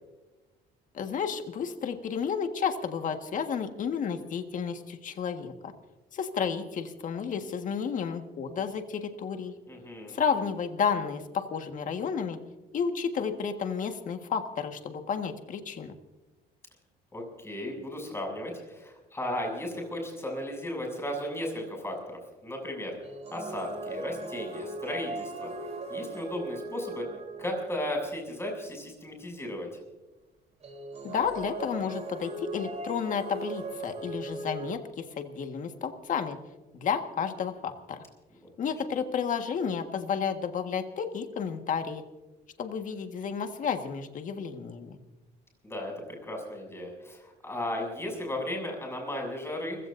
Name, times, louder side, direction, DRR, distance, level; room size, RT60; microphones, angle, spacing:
voice 1, 0.9-5.7 6.1-9.5 10.1-12.4 12.7-15.9 31.0-36.4 36.7-38.0 38.6-42.0 42.6-45.0, left 6 dB, 50° left, 6 dB, 1.6 m, -31 dB
voice 2, 9.7-10.1 17.1-23.0 23.3-25.5 25.9-27.1 27.4-29.7 45.6-49.8, left 1 dB, 15° left, 1 dB, 7.0 m, -35 dB
sound 1, 23.0-28.1 30.6-34.7, right 2 dB, 40° right, 3.8 m, -39 dB
30.0 x 16.0 x 2.7 m, 1.1 s
cardioid pair, 110°, 17 cm